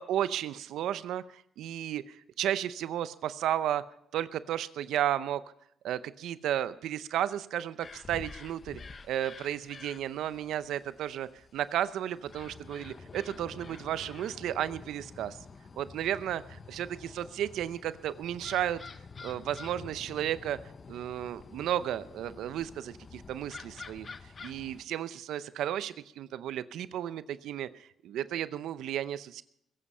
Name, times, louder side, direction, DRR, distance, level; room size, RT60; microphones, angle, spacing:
voice 1, 0.0-3.8 4.1-5.4 5.8-8.8 9.1-15.4 15.8-16.4 16.7-18.8 19.2-20.6 20.9-24.1 24.4-29.4, right 11 dB, 80° right, 15 dB, 0.6 m, -33 dB
sound 1, 7.8-24.8, left 4 dB, 40° left, 0.9 m, -48 dB
21.5 x 8.7 x 5.5 m, 0.73 s
cardioid pair, 90°, 0 cm